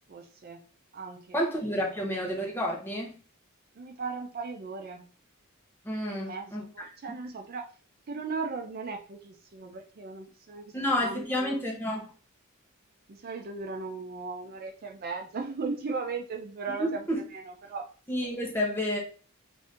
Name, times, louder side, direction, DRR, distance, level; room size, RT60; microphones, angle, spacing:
voice 1, 0.1-0.6 0.9-1.4 1.8-1.9 3.7-5.1 6.1-7.6 8.1-11.6 13.1-17.9, right 4 dB, 45° right, 0.4 m, -37 dB
voice 2, 1.3-3.1 5.8-7.2 10.7-12.1 16.8-17.2 18.1-19.0, equal, 10° left, 0.8 m, -30 dB
2.6 x 2.5 x 3.5 m
head